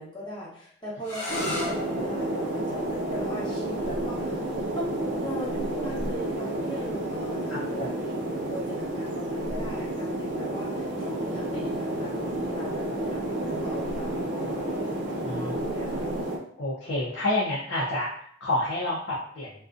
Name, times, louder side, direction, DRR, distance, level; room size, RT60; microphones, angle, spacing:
voice 1, 0.0-4.5 4.7-8.2 8.5-16.1, equal, 25° left, -7 dB, 0.8 m, -39 dB
sound 1, 1.0-6.7, left 2 dB, 55° left, 0.9 m, -39 dB
sound 2, 1.3-16.4, right 1 dB, 60° right, 0.5 m, -30 dB
voice 2, 7.5-7.9 15.3-15.6 16.0-16.3 16.6-19.5, left 1 dB, 75° left, -6 dB, 0.6 m, -29 dB
2.5 x 2.2 x 2.4 m, 0.63 s
head